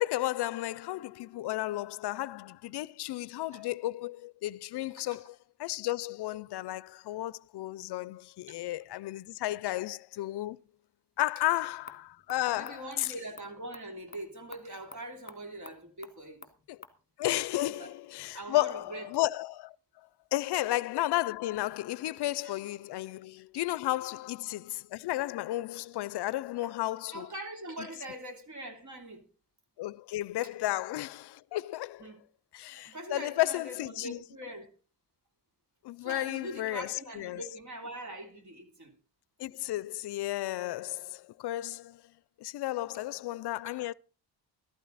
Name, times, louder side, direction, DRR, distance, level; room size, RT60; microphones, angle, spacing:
voice 1, 0.0-10.6 11.2-13.1 16.7-16.8 17.2-19.8 20.3-27.3 27.8-27.9 29.8-32.1 32.5-34.2 35.8-37.4 39.4-42.0 42.4-43.9, left 16 dB, 70° left, 0.5 m, -33 dB
sound 1, 11.2-17.0, left 4 dB, 20° left, 1.6 m, -53 dB
voice 2, 12.5-16.4 17.7-17.9 18.3-19.1 20.5-20.6 22.4-22.5 26.6-26.7 27.1-29.2 32.0-32.2 32.8-34.7 36.0-38.9 43.6-43.8, right 1 dB, 45° right, 3.0 m, -43 dB
13.5 x 12.5 x 4.0 m
cardioid pair, 115°, 42 cm